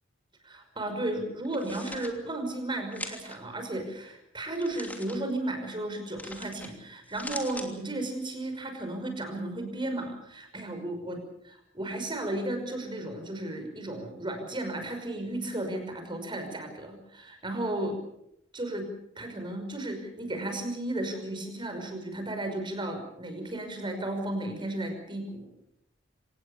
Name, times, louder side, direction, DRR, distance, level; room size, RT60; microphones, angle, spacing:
voice 1, 0.4-11.2 11.4-18.0 18.5-18.9 19.2-25.5, right 1 dB, 25° right, 6 dB, 5.6 m, -34 dB
sound 1, 1.5-2.1 2.9-3.4 4.6-5.2 6.2-6.7 7.0-7.7, left 2 dB, 10° left, 3.0 m, -41 dB
25.5 x 19.0 x 7.2 m, 0.79 s
head